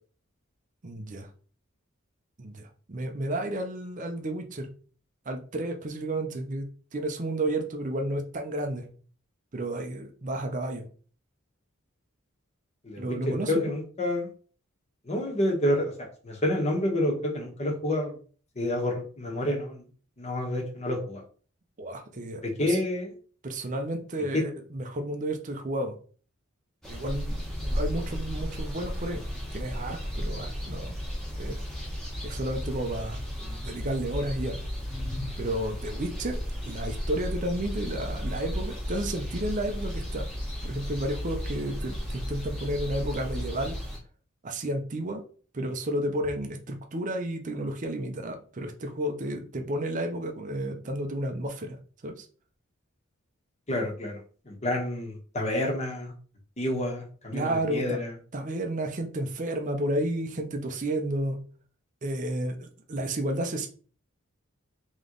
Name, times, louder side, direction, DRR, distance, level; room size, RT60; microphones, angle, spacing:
voice 1, 0.8-1.3 2.4-4.7 5.3-8.9 9.5-10.9 13.0-13.7 21.8-22.8 23.4-26.0 26.9-29.3 29.5-30.9 31.4-31.6 32.2-34.6 35.4-40.3 40.6-43.8 44.4-45.2 45.5-52.3 57.3-58.0 58.3-61.4 62.0-63.7, right 1 dB, 40° right, 4 dB, 0.6 m, -32 dB
voice 2, 12.8-13.2 13.5-14.3 15.0-18.2 18.5-19.9 20.2-21.2 22.4-23.1 24.3-24.4 53.7-54.2 54.4-56.1 56.6-58.1, left 1 dB, 30° left, 0 dB, 1.2 m, -28 dB
sound 1, 26.8-44.0, equal, 5° left, 1.2 m, -34 dB
3.4 x 3.1 x 3.8 m, 0.41 s
head